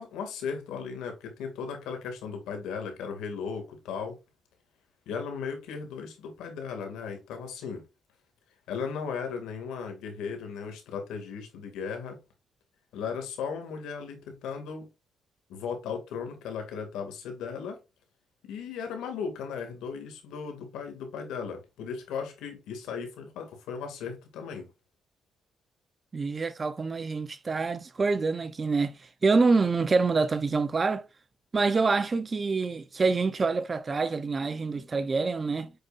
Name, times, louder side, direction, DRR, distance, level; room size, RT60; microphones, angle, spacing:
voice 1, 0.0-4.2 5.1-7.8 8.7-12.2 12.9-14.9 15.5-17.8 18.4-24.7, left 6 dB, 90° left, 2.4 m, -36 dB
voice 2, 26.1-28.9 29.2-31.1 31.5-35.7, right 4 dB, 35° right, 0.8 m, -26 dB
7.8 x 5.2 x 2.6 m
cardioid pair, 90°, 0 cm